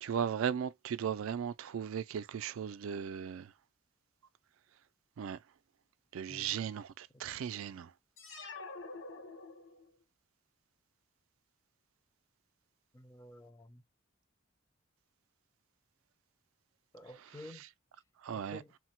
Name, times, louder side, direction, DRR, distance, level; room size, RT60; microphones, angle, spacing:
voice 1, 0.0-3.5 5.2-5.4 6.1-7.9 18.2-18.6, right 8 dB, 80° right, 0.3 m, -37 dB
sound 1, 8.2-10.0, left 3 dB, 65° left, 0.9 m, -47 dB
voice 2, 12.9-13.8 16.9-17.6 18.3-18.7, left 1 dB, 15° left, 0.4 m, -51 dB
3.1 x 2.1 x 2.9 m
head